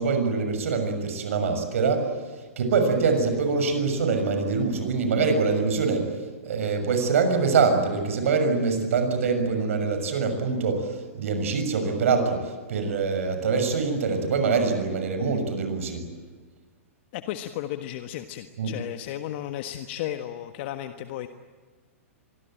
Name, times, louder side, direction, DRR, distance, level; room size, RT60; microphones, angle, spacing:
voice 1, 0.0-2.0 2.6-6.1 6.4-16.0 18.6-18.7, right 4 dB, 70° right, 7 dB, 6.7 m, -24 dB
voice 2, 17.1-21.3, left 12 dB, 50° left, 8 dB, 1.5 m, -34 dB
25.5 x 21.5 x 9.1 m, 1.5 s
hypercardioid pair, 120°, 8 cm